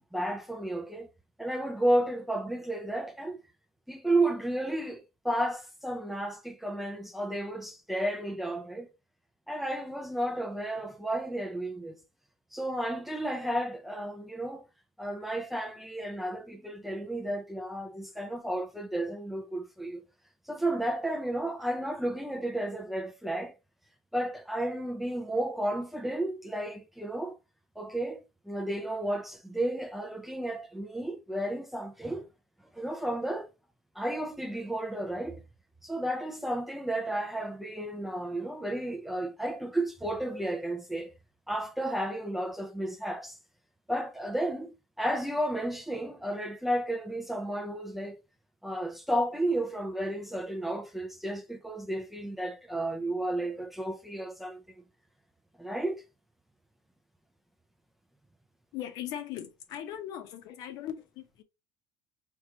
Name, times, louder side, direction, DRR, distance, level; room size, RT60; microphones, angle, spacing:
voice 1, 0.1-1.1 1.4-3.4 3.9-5.0 5.2-8.9 9.5-12.0 12.5-14.6 15.0-20.0 20.5-23.5 24.1-27.4 27.8-32.3 32.7-33.5 34.0-35.4 35.8-41.1 41.5-43.4 43.9-48.2 48.6-54.6 55.6-56.0, right 1 dB, 5° right, 0.4 m, -32 dB
voice 2, 58.7-61.4, left 11 dB, 65° left, 0.8 m, -39 dB
4.4 x 2.3 x 2.8 m
cardioid pair, 140°, 7 cm